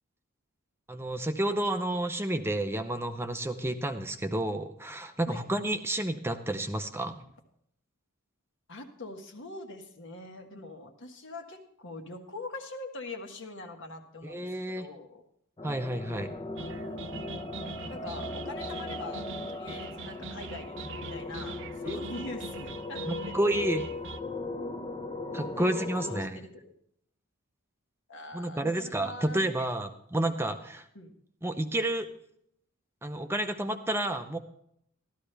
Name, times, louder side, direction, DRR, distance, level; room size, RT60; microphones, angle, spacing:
voice 1, 0.9-7.2 14.2-14.9 15.6-16.4 21.8-22.0 23.1-23.9 25.3-26.4 28.3-30.8 31.4-32.1 33.0-34.4, right 1 dB, 10° right, 7 dB, 0.6 m, -30 dB
voice 2, 8.7-14.5 14.7-15.2 16.6-17.0 17.9-19.2 19.5-23.3 25.6-25.7 26.0-26.7 28.1-29.7 30.9-31.1, left 2 dB, 60° left, 4 dB, 1.6 m, -43 dB
sound 1, 15.6-26.3, left 2 dB, 25° left, 0.7 m, -38 dB
sound 2, 16.6-24.2, right 5 dB, 65° right, 0.6 m, -43 dB
13.5 x 12.5 x 3.4 m, 0.71 s
head